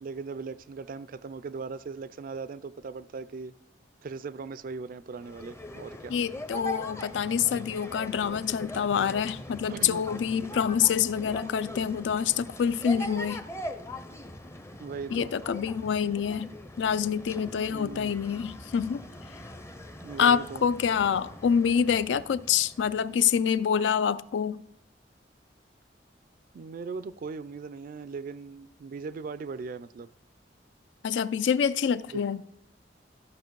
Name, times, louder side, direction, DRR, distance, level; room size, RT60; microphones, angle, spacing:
voice 1, 0.0-3.5 4.0-6.1 9.7-10.0 10.8-11.0 14.8-15.3 17.7-18.1 20.0-20.6 26.5-30.1 32.1-32.2, right 4 dB, 50° right, 0.3 m, -39 dB
sound 1, 5.1-23.6, left 1 dB, 15° left, 0.6 m, -42 dB
voice 2, 6.1-13.4 15.1-16.5 16.8-19.1 20.2-24.6 31.0-32.4, left 7 dB, 75° left, 0.4 m, -26 dB
13.5 x 4.9 x 4.6 m
head